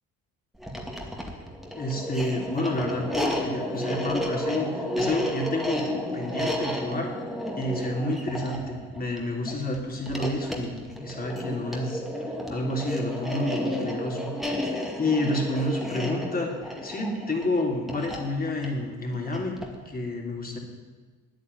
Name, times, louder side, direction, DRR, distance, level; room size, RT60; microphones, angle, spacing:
sound 1, 0.5-19.8, left 1 dB, ahead, 2.3 m, -32 dB
voice 1, 1.7-5.8 6.1-7.1 7.6-12.0 12.5-14.3 14.7-19.6 19.8-20.6, left 1 dB, 30° left, 0 dB, 3.2 m, -29 dB
9.7 x 9.1 x 9.2 m, 1.4 s
cardioid pair, 90°, 30 cm